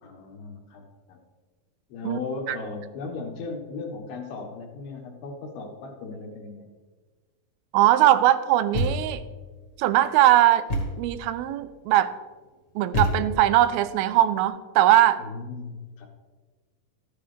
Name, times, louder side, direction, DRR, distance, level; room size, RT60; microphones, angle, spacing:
voice 1, 0.0-0.8 1.1-1.2 1.9-6.7 15.2-16.1, left 4 dB, 80° left, 2 dB, 3.3 m, -36 dB
voice 2, 7.7-9.2 9.8-10.7 11.0-12.1 12.8-15.2, right 13 dB, 85° right, 13 dB, 2.4 m, -20 dB
Thump thud, 8.7-9.3 10.7-11.1 12.9-13.6, equal, 35° left, 1.8 m, -27 dB
14.0 x 9.9 x 3.3 m, 1.4 s
omnidirectional pair, 4.3 m